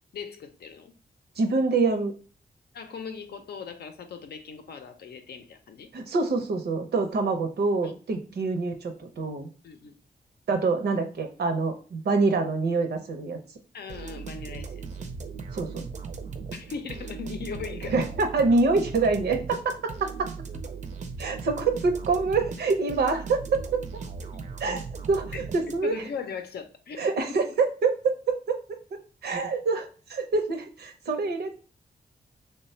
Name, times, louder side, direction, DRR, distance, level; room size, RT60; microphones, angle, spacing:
voice 1, 0.1-0.9 2.7-5.9 7.8-7.9 9.6-10.0 13.7-14.9 16.5-18.0 24.3-24.5 25.3-25.4 25.8-27.4, left 6 dB, 80° left, 0.5 m, -39 dB
voice 2, 1.4-2.1 5.9-9.5 10.5-13.4 15.5-15.9 17.9-19.4 20.0-20.3 21.2-23.8 24.6-24.8 25.1-25.2 25.5-26.0 27.0-28.8 29.2-31.6, right 3 dB, 80° right, 0.7 m, -26 dB
sound 1, 13.9-26.1, right 5 dB, 45° right, 0.5 m, -38 dB
3.2 x 2.2 x 4.2 m
wide cardioid pair, 110°, 16 cm